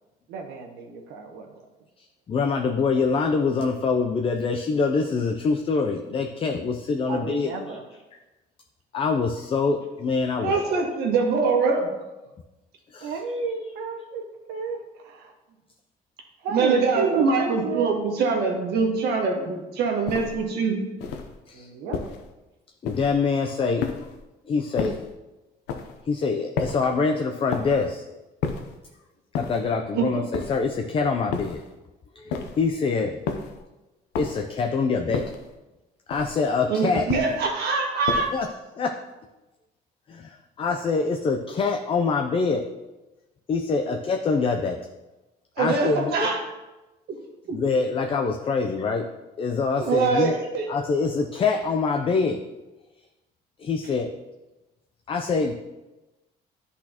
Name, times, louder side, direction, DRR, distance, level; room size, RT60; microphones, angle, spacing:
voice 1, 0.3-1.6 7.1-7.8 13.0-15.3 16.4-17.9 21.5-22.0, right 5 dB, 90° right, 3 dB, 1.0 m, -31 dB
voice 2, 2.3-7.8 8.9-10.6 12.9-13.1 21.5-21.7 22.8-23.9 24.5-25.0 26.1-28.0 29.4-31.6 32.2-33.2 34.2-35.2 36.1-37.1 38.3-38.5 38.8-38.9 40.1-42.7 43.5-44.8 45.6-46.3 47.5-49.0 49.4-50.4 50.7-52.4 53.6-54.1 55.1-55.5, left 4 dB, 30° left, 4 dB, 0.5 m, -25 dB
voice 3, 10.4-11.9 16.5-20.8 29.9-30.2 36.7-38.3 45.6-46.4 47.5-47.6 49.8-50.6, right 4 dB, 70° right, 1 dB, 1.5 m, -23 dB
sound 1, 20.1-20.5 21.0-21.4 21.9-22.3 22.9-23.3 23.8-24.2 24.8-25.1 25.7-26.0 26.6-27.0 27.5-27.9 28.4-28.8 29.3-29.8 30.3-30.8 31.3-31.7 32.3-32.7 33.3-33.6 34.1-34.6 35.1-35.5 36.1-36.5 37.1-37.5 38.1-38.5, left 5 dB, 90° left, 0.7 m, -32 dB
10.0 x 4.2 x 2.9 m, 1.1 s
cardioid pair, 110°, 17 cm